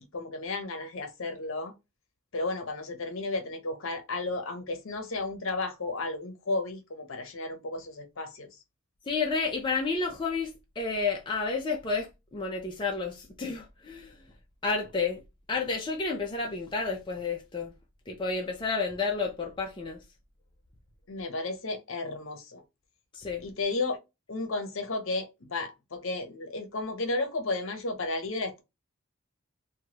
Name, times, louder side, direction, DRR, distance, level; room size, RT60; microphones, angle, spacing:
voice 1, 0.0-1.7 2.3-8.6 21.1-22.6 23.4-24.0 24.3-28.6, left 2 dB, 65° left, 0.7 m, -33 dB
voice 2, 9.1-14.2 14.6-15.2 15.5-17.7 18.1-20.0 23.1-23.4, left 4 dB, 20° left, 0.4 m, -31 dB
3.0 x 2.2 x 2.8 m
head